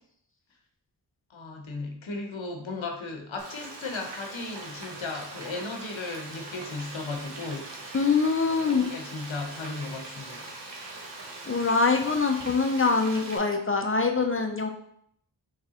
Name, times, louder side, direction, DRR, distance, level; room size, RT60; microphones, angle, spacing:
voice 1, 1.3-7.7 8.6-10.5, left 3 dB, 80° left, 3 dB, 0.7 m, -36 dB
Frying (food), 3.4-13.4, right 2 dB, 65° right, 0.8 m, -41 dB
voice 2, 7.9-8.9 11.5-14.7, left 4 dB, 30° left, 3 dB, 0.4 m, -24 dB
3.6 x 3.2 x 2.8 m, 0.68 s
wide cardioid pair, 45°, 46 cm